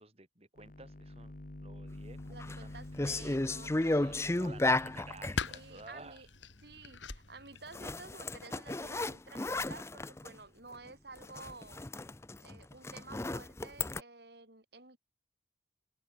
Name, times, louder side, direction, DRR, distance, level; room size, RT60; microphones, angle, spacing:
voice 1, 0.0-1.3 1.6-2.8 3.9-6.2, right 2 dB, 35° right, 5.6 m, -53 dB
sound 1, 0.6-5.9, left 1 dB, 45° left, 1.5 m, -48 dB
sound 2, 2.2-2.6 2.9-5.4 7.7-10.3 10.7-10.9 11.2-14.0, left 2 dB, 15° left, 0.5 m, -34 dB
voice 2, 2.3-4.7 5.5-6.3 6.6-11.8 12.4-15.0, right 3 dB, 60° right, 4.2 m, -52 dB
sound 3, 2.7-8.0, left 4 dB, 85° left, 3.0 m, -45 dB
open air
head